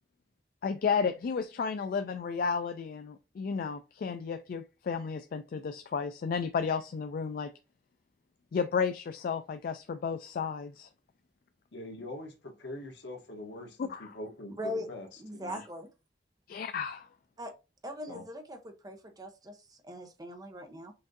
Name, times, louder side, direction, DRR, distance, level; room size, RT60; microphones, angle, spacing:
voice 1, 0.6-7.5 8.5-10.9 13.8-14.1 16.5-17.1, left 6 dB, 55° left, 0.3 m, -32 dB
voice 2, 11.7-15.1 15.3-15.6 18.1-18.2, left 1 dB, 90° left, 1.0 m, -43 dB
voice 3, 14.6-14.9 15.2-15.9 17.4-17.5 17.8-20.9, left 1 dB, 20° right, 0.7 m, -40 dB
5.7 x 2.6 x 2.5 m
head